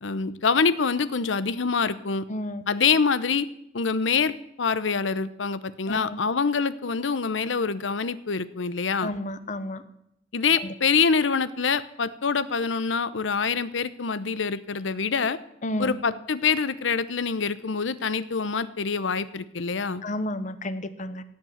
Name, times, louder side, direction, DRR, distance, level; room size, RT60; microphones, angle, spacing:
voice 1, 0.0-2.2 2.7-3.5 3.7-4.3 4.6-9.1 10.3-15.4 15.8-20.0, left 5 dB, 85° left, 15 dB, 0.8 m, -25 dB
voice 2, 2.3-2.6 5.9-6.2 9.0-9.8 15.6-15.9 20.0-21.2, left 1 dB, 40° left, 12 dB, 1.0 m, -31 dB
17.0 x 7.6 x 8.0 m, 0.79 s
head